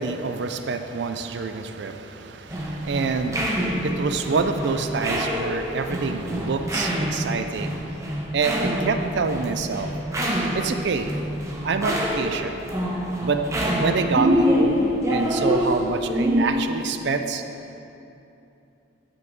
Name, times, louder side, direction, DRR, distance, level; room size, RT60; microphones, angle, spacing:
voice 1, 0.0-8.1 8.3-9.9 10.5-11.1 11.6-12.6 13.2-13.4 13.8-17.4, right 4 dB, 60° right, 8 dB, 0.4 m, -27 dB
sound 1, 2.5-16.5, equal, 15° right, 0.7 m, -26 dB
8.9 x 6.0 x 3.9 m, 2.8 s
head